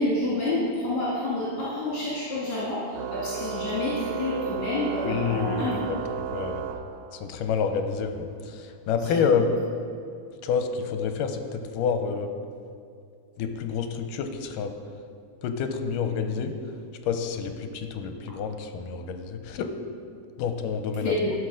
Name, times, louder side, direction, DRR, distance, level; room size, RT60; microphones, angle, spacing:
voice 1, 0.0-5.9 9.1-9.2 21.0-21.3, left 2 dB, 65° left, -8 dB, 3.3 m, -28 dB
Organ, 2.9-7.5, right 8 dB, 80° right, 1.7 m, -34 dB
voice 2, 5.0-6.0 6.3-6.6 7.1-9.5 10.4-12.3 13.4-14.7 15.4-16.5 17.1-19.7 20.4-21.1, left 6 dB, 85° left, 7 dB, 2.3 m, -28 dB
13.5 x 6.0 x 6.4 m, 2.3 s
omnidirectional pair, 3.8 m